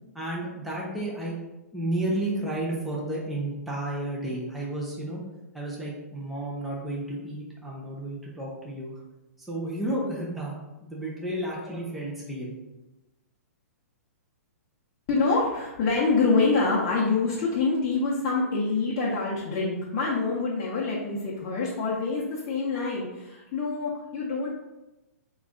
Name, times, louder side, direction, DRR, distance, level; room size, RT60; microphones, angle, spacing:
voice 1, 0.1-1.4 1.7-5.2 5.5-9.0 9.5-12.5, right 1 dB, ahead, -5 dB, 0.6 m, -32 dB
voice 2, 15.1-24.5, left 3 dB, 35° left, -7 dB, 0.8 m, -26 dB
3.9 x 2.4 x 3.6 m, 1.0 s
hypercardioid pair, 135°, 9 cm